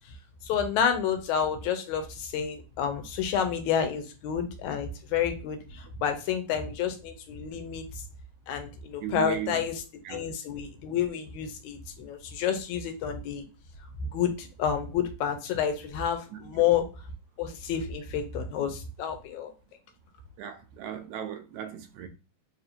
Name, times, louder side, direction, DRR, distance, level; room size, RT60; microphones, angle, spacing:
voice 1, 0.4-7.9 8.5-9.8 10.1-13.5 14.1-16.9 17.4-19.5, left 8 dB, 85° left, 2.1 m, -29 dB
voice 2, 9.0-9.6 10.1-10.2 16.3-16.7 20.4-22.1, right 10 dB, 80° right, 2.0 m, -37 dB
4.8 x 2.5 x 2.8 m
omnidirectional pair, 3.4 m